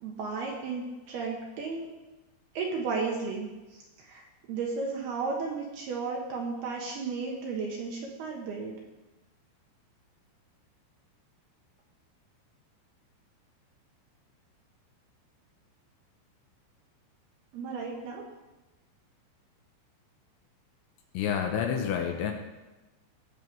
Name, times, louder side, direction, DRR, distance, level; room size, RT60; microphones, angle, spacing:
voice 1, 0.0-1.9 2.5-8.8 17.5-18.2, right 4 dB, 65° right, -1 dB, 2.7 m, -34 dB
voice 2, 21.1-22.3, left 8 dB, 75° left, 3 dB, 3.1 m, -28 dB
19.0 x 7.6 x 4.6 m, 1.1 s
omnidirectional pair, 5.8 m